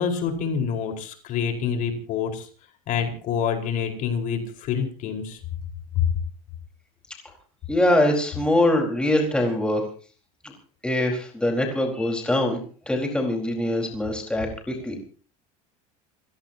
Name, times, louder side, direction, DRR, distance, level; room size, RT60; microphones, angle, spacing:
voice 1, 0.0-2.5 2.9-5.4 6.0-6.1, left 7 dB, 55° left, 4 dB, 4.7 m, -26 dB
voice 2, 7.7-9.8 10.4-10.5 10.8-12.6 12.9-15.0, left 1 dB, 5° left, 1 dB, 4.6 m, -23 dB
29.5 x 17.0 x 2.9 m, 0.40 s
supercardioid pair, 125°, 17 cm